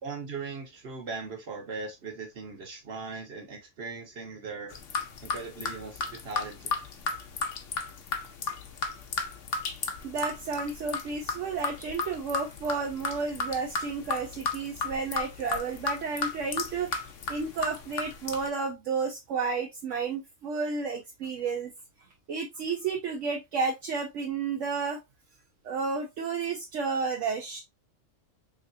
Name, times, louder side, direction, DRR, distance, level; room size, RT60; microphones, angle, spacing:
voice 1, 0.0-4.7 5.2-6.7, right 4 dB, 55° right, 1.4 m, -39 dB
sound 1, 4.7-18.5, left 5 dB, 75° left, 1.1 m, -34 dB
voice 2, 10.0-16.9 17.3-21.7 22.3-25.0 25.6-27.6, right 5 dB, 70° right, 1.0 m, -31 dB
3.5 x 3.3 x 2.6 m
omnidirectional pair, 1.3 m